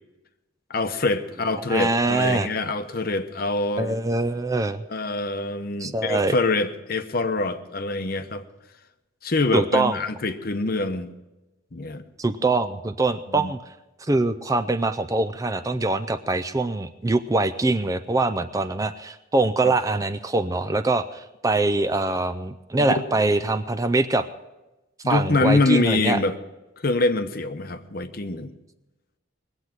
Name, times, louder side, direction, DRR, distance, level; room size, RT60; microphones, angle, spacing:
voice 1, 0.7-4.0 4.9-8.4 9.2-11.1 11.7-12.0 13.3-13.5 19.6-19.7 22.8-23.1 25.0-26.4 26.8-28.5, left 2 dB, 50° left, 9 dB, 0.8 m, -25 dB
voice 2, 1.7-2.5 3.8-4.8 5.8-6.3 9.5-10.0 12.2-13.6 14.0-24.3 25.0-26.2, right 2 dB, 15° right, 10 dB, 0.4 m, -23 dB
20.5 x 8.0 x 6.0 m, 1.0 s
head